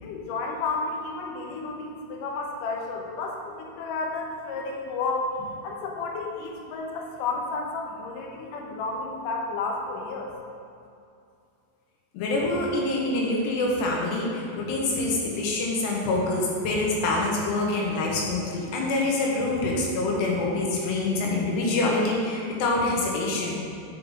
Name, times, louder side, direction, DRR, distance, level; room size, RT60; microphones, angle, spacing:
voice 1, 0.0-5.3 5.6-10.3, left 3 dB, 90° left, 0 dB, 1.8 m, -32 dB
voice 2, 12.1-23.6, left 2 dB, 75° left, -2 dB, 3.2 m, -26 dB
7.3 x 5.6 x 5.5 m, 2.5 s
omnidirectional pair, 5.1 m